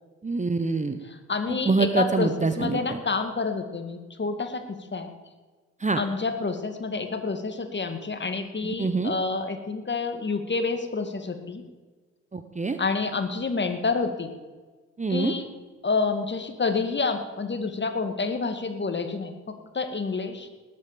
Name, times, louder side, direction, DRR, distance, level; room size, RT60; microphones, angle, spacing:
voice 1, 0.2-1.0 1.5-2.8 5.8-6.0 8.6-9.1 12.3-12.8 15.0-15.3, right 4 dB, 15° right, 9 dB, 1.2 m, -25 dB
voice 2, 1.0-5.1 6.0-11.6 12.8-14.3 15.1-15.5 15.8-20.5, left 4 dB, 25° left, 7 dB, 2.2 m, -28 dB
19.0 x 8.7 x 7.0 m, 1.4 s
hypercardioid pair, 50°, 41 cm